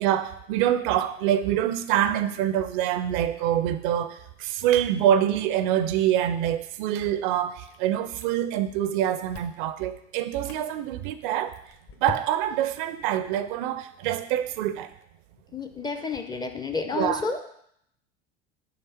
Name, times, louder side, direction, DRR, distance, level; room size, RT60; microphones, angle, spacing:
voice 1, 0.0-11.6 12.0-14.9 16.9-17.2, right 11 dB, 50° right, 12 dB, 0.4 m, -25 dB
Chewing mastication, 7.6-8.6 8.9-9.7 10.2-10.6 11.2-12.7, left 7 dB, 40° left, 0.9 m, -42 dB
voice 2, 15.5-17.4, left 4 dB, 15° left, 6 dB, 0.4 m, -30 dB
5.7 x 3.3 x 5.5 m, 0.72 s
figure-of-eight pair, 70°, 34 cm